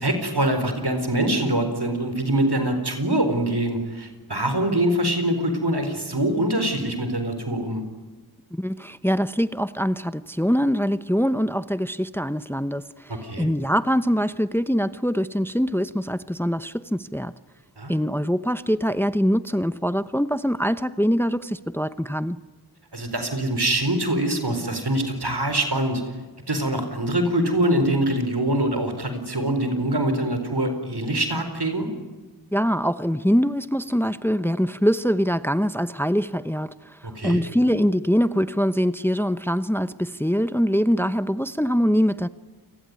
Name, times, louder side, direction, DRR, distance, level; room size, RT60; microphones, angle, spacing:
voice 1, 0.0-7.8 13.1-13.5 17.8-18.0 22.9-26.0 26.5-31.9 37.0-37.4, right 1 dB, 75° right, 4.6 m, -24 dB
voice 2, 8.5-17.3 17.9-22.4 32.5-36.7 37.2-42.3, equal, 5° left, 0.8 m, -23 dB
29.0 x 20.5 x 9.7 m
wide cardioid pair, 45°, 39 cm